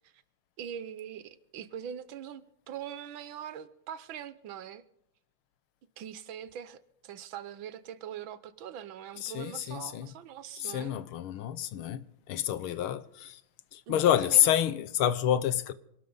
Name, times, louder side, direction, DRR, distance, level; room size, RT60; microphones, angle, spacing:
voice 1, 0.6-4.8 6.0-10.9 13.9-14.5, right 9 dB, 75° right, 1.6 m, -42 dB
voice 2, 9.2-10.1 10.6-13.4 13.7-15.7, left 11 dB, 85° left, 1.7 m, -28 dB
27.0 x 12.5 x 4.0 m
omnidirectional pair, 2.3 m